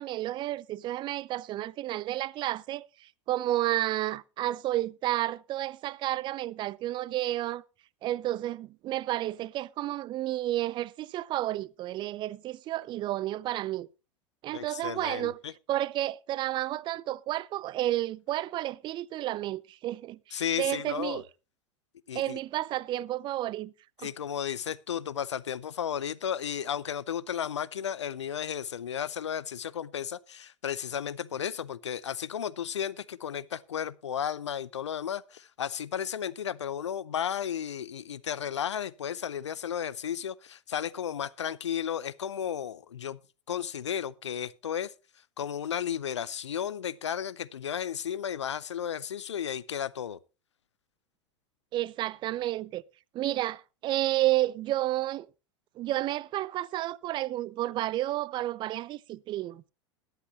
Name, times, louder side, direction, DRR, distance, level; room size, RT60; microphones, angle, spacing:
voice 1, 0.0-7.6 8.0-13.9 14.4-15.4 15.7-21.2 22.1-23.7 24.0-24.1 51.7-52.8 53.1-55.3 55.8-59.6, right 14 dB, 30° right, 0.5 m, -31 dB
voice 2, 14.5-15.5 20.3-21.2 22.1-22.4 24.0-43.2 43.5-44.9 45.4-50.2, left 9 dB, 75° left, 0.6 m, -34 dB
21.0 x 8.1 x 3.0 m
figure-of-eight pair, 85°, 15 cm